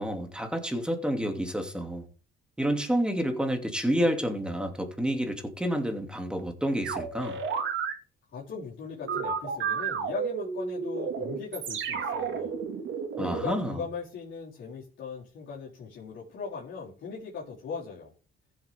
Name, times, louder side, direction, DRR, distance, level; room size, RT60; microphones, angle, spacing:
voice 1, 0.0-2.0 2.6-7.4 13.2-13.8, equal, 5° right, 2.7 m, -29 dB
sound 1, 6.8-7.9 9.0-13.5, right 6 dB, 75° right, 2.3 m, -32 dB
voice 2, 8.3-12.6 13.2-18.1, left 5 dB, 75° left, 4.1 m, -39 dB
15.0 x 7.5 x 3.7 m
cardioid pair, 90°, 20 cm